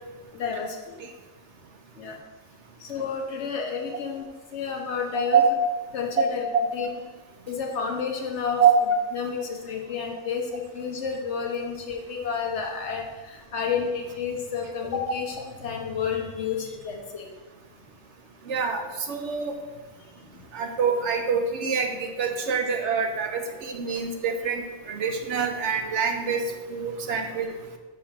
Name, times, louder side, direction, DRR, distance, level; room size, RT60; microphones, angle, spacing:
voice 1, 0.3-0.8 1.9-2.2 2.8-5.4 5.9-6.5 6.7-6.9 7.5-8.6 9.1-17.3 20.3-20.4, left 6 dB, 60° left, 2 dB, 1.2 m, -30 dB
voice 2, 5.1-5.5 6.2-6.3 8.6-8.7 18.5-19.6 20.5-26.4 26.7-27.5, right 6 dB, 65° right, 5 dB, 0.9 m, -25 dB
6.4 x 3.9 x 5.6 m, 1.3 s
omnidirectional pair, 1.4 m